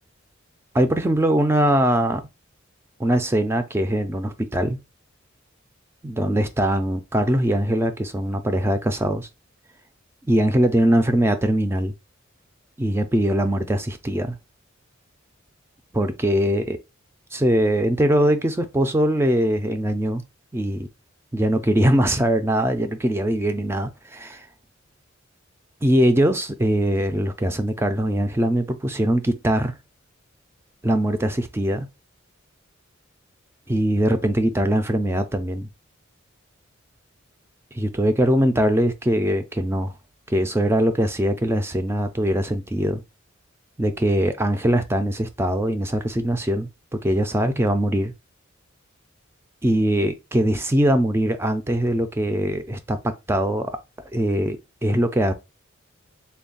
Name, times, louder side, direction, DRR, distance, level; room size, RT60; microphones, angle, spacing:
voice 1, 0.7-2.2 3.0-4.8 6.0-9.3 10.3-11.9 12.8-14.4 15.9-16.8 17.3-20.2 20.5-20.9 21.3-24.4 25.8-29.7 30.8-31.9 33.7-35.7 37.7-39.9 40.3-43.0 43.8-48.1 49.6-53.7 54.1-55.3, right 1 dB, 10° right, 0.3 m, -21 dB
3.4 x 2.3 x 3.8 m
head